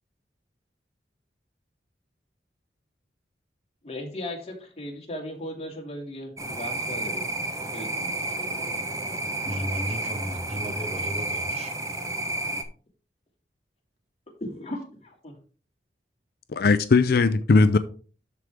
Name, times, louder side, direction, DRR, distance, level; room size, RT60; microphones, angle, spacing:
voice 1, 3.8-7.2 7.6-9.2 14.4-15.4, left 1 dB, 35° left, 2.4 m, -37 dB
sound 1, 6.4-12.6, right 2 dB, 20° right, 1.1 m, -31 dB
voice 2, 9.4-11.7, equal, 40° right, 2.0 m, -34 dB
voice 3, 16.5-17.8, left 4 dB, 55° left, 0.4 m, -19 dB
12.5 x 4.7 x 3.6 m
head